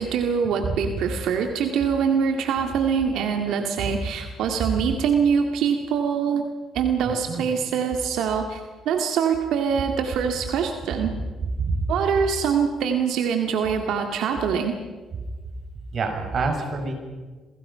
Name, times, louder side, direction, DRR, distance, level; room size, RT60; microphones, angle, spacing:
voice 1, 0.0-6.5 6.7-11.2 11.9-14.8, right 6 dB, 85° right, 5 dB, 2.0 m, -24 dB
voice 2, 7.0-7.4 11.6-11.8 15.9-16.9, right 3 dB, 55° right, 4 dB, 6.5 m, -26 dB
28.5 x 23.5 x 5.7 m, 1.4 s
cardioid pair, 90°, 0 cm